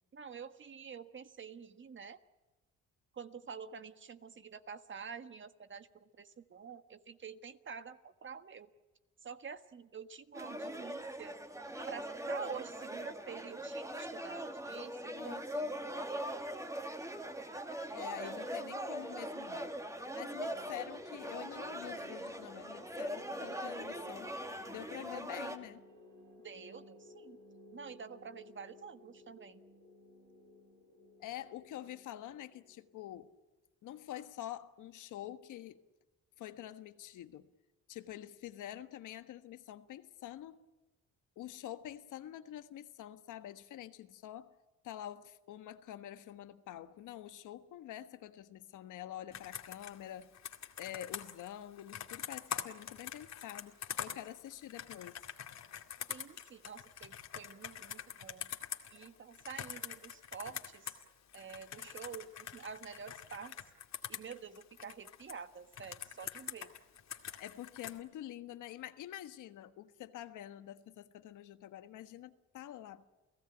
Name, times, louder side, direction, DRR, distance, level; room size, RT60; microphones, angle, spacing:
voice 1, 0.1-2.2 3.1-8.7 9.2-11.4 11.9-15.3 18.2-18.5 26.4-27.4 27.7-29.6 56.1-58.5 58.9-61.0 61.3-63.6 64.1-66.7, right 6 dB, 40° right, 1.5 m, -48 dB
sound 1, 10.3-25.6, equal, 10° right, 2.2 m, -41 dB
voice 2, 15.0-15.9 17.9-19.7 20.1-24.3 24.7-25.9 31.2-33.3 33.8-35.8 36.4-37.5 37.9-40.6 41.4-44.5 44.8-50.3 50.8-55.2 67.4-73.0, left 12 dB, 80° left, 1.4 m, -47 dB
sound 2, 20.5-33.3, left 3 dB, 85° right, 7.1 m, -58 dB
Computer keyboard, 49.3-61.0 61.3-65.3 65.7-68.0, left 9 dB, 60° left, 2.3 m, -45 dB
30.0 x 16.5 x 9.0 m
cardioid pair, 90°, 30 cm